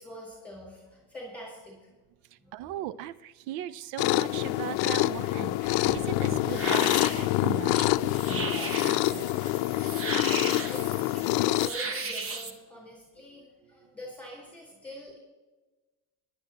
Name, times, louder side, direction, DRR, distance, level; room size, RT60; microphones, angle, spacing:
voice 1, 0.0-1.9 2.4-2.5 10.4-15.2, equal, 5° left, -3 dB, 3.9 m, -44 dB
voice 2, 2.5-7.0 7.4-9.5, right 13 dB, 85° right, 17 dB, 0.5 m, -38 dB
sound 1, 4.0-11.7, left 18 dB, 80° left, 0.6 m, -26 dB
sound 2, 5.6-12.5, right 4 dB, 35° right, 1.4 m, -37 dB
20.5 x 11.0 x 2.9 m, 1.2 s
cardioid pair, 130°, 36 cm